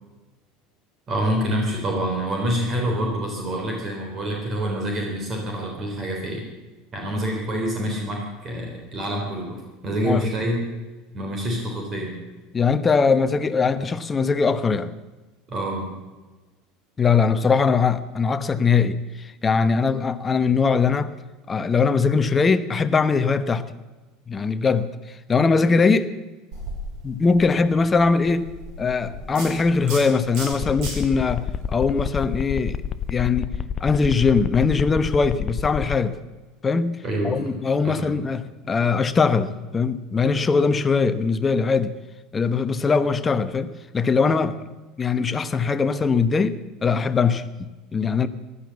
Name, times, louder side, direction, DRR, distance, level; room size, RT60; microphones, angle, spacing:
voice 1, 1.1-6.5 6.9-10.6 11.1-12.2 15.5-15.9 37.0-38.1, equal, 35° right, 3.6 m, -27 dB
voice 2, 12.5-14.9 17.0-21.1 21.5-23.7 24.3-26.1 27.0-28.5 28.8-32.8 33.1-33.5 33.8-36.2 36.6-41.9 42.3-44.6 45.0-48.3, left 5 dB, 25° left, 1.0 m, -21 dB
sound 1, 26.5-33.1, right 1 dB, 55° right, 4.8 m, -38 dB
sound 2, 30.5-36.0, left 8 dB, 40° left, 0.7 m, -28 dB
15.5 x 11.5 x 7.1 m
figure-of-eight pair, 75°, 0 cm